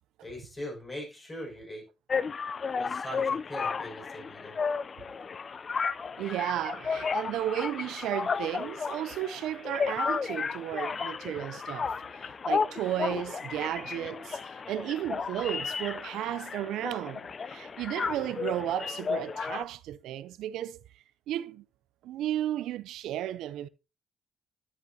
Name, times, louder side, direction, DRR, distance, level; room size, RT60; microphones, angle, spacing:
voice 1, 0.2-1.8 2.8-4.6 18.1-18.3, left 1 dB, 20° left, 5.5 m, -41 dB
sound 1, 2.1-19.6, left 5 dB, 40° left, 0.4 m, -33 dB
voice 2, 6.2-20.8 21.3-21.6 22.0-23.7, right 12 dB, 85° right, 0.4 m, -34 dB
10.5 x 9.8 x 2.7 m
cardioid pair, 90°, 0 cm